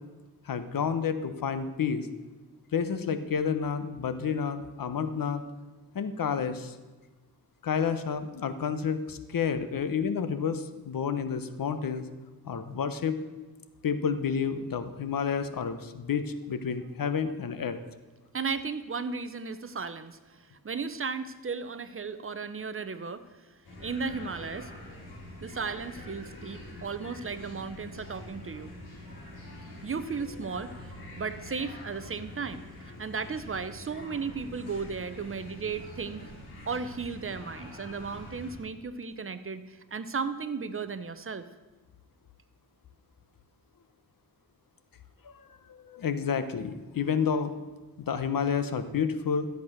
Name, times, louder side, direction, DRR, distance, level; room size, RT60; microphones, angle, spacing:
voice 1, 0.5-2.1 2.7-5.4 5.9-6.7 7.6-12.1 12.4-13.2 13.8-17.8 45.2-45.3 45.7-47.5 48.0-49.5, left 6 dB, 60° left, 11 dB, 1.1 m, -30 dB
voice 2, 18.3-23.2 23.8-24.7 25.4-28.7 29.8-36.3 36.7-41.5, right 5 dB, 35° right, 12 dB, 0.8 m, -35 dB
sound 1, 23.6-38.6, left 1 dB, 80° left, 5.0 m, -45 dB
13.5 x 8.2 x 6.6 m, 1.2 s
wide cardioid pair, 100°, 38 cm